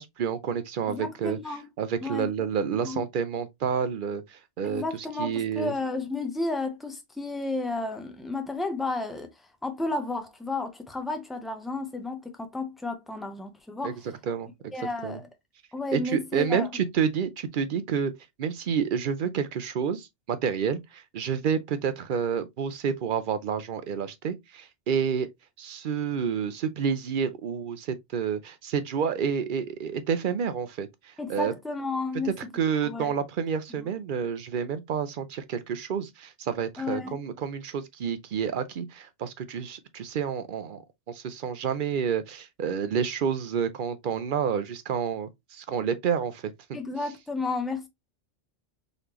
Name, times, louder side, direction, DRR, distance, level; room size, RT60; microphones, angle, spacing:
voice 1, 0.0-1.4 1.8-4.8 5.2-5.7 13.8-13.9 14.3-14.5 15.0-15.2 15.9-18.1 18.4-25.3 25.6-31.5 32.3-40.8 41.1-46.5, right 7 dB, 60° right, 0.6 m, -29 dB
voice 2, 0.8-1.6 2.0-2.3 2.7-3.0 4.6-9.3 9.6-14.0 14.7-15.3 15.7-16.7 31.2-32.5 32.8-33.1 33.8-33.9 36.8-37.2 46.7-47.9, left 3 dB, ahead, 0.5 m, -32 dB
3.9 x 3.3 x 2.9 m
omnidirectional pair, 1.2 m